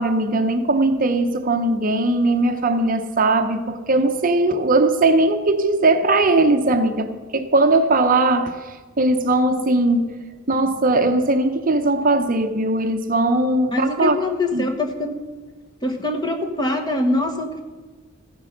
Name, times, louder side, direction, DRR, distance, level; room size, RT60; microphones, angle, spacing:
voice 1, 0.0-8.6 9.0-10.2 10.5-14.2 14.5-14.7, right 2 dB, 40° right, 7 dB, 0.7 m, -19 dB
voice 2, 13.7-15.1 15.8-17.6, left 2 dB, 20° left, 3 dB, 1.3 m, -23 dB
15.0 x 10.0 x 6.6 m, 1.3 s
head